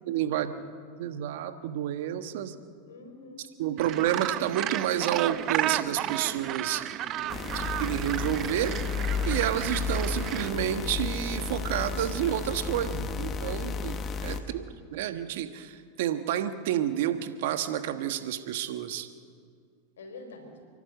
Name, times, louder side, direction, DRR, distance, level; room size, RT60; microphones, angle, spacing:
voice 1, 0.1-0.5 1.0-2.5 3.6-7.2 7.8-8.9 9.2-19.1, right 11 dB, 70° right, 9 dB, 1.3 m, -30 dB
voice 2, 2.8-3.5 7.2-7.8 14.3-14.8 20.0-20.6, left 2 dB, 90° left, 5 dB, 4.1 m, -47 dB
Gull seagull, 3.8-10.5, right 12 dB, 40° right, 0.7 m, -33 dB
sound 1, 7.3-14.4, left 5 dB, 30° left, 1.4 m, -32 dB
29.5 x 11.5 x 8.1 m, 2.1 s
hypercardioid pair, 115°, 0 cm